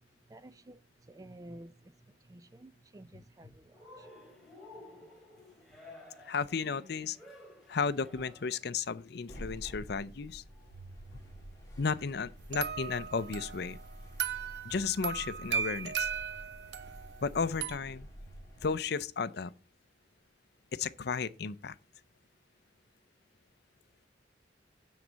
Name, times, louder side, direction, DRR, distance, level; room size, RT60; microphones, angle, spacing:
voice 1, 0.3-4.1 4.7-4.8, right 1 dB, 20° right, 0.4 m, -52 dB
Cheering, 3.7-8.7, left 1 dB, ahead, 2.6 m, -53 dB
voice 2, 6.2-7.2 7.7-10.4 11.8-13.8 14.6-16.1 17.2-18.1 18.6-19.5 20.7-21.8, left 5 dB, 60° left, 0.5 m, -34 dB
sound 1, 9.3-18.8, equal, 20° left, 2.5 m, -49 dB
sound 2, 12.5-17.8, right 7 dB, 65° right, 0.7 m, -37 dB
9.5 x 4.0 x 7.3 m
head